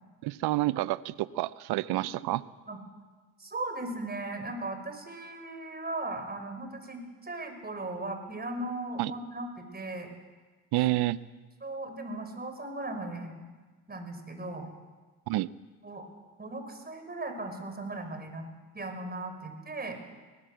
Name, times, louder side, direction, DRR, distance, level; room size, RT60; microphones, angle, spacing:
voice 1, 0.2-2.4 9.0-9.1 10.7-11.2 15.3-15.5, right 17 dB, 70° right, 18 dB, 0.8 m, -28 dB
voice 2, 3.4-10.1 11.6-13.5 13.9-14.7 15.8-16.1 16.4-18.5 18.7-20.0, right 2 dB, 25° right, 6 dB, 5.7 m, -37 dB
21.5 x 19.0 x 8.0 m, 1.3 s
supercardioid pair, 70°, 40 cm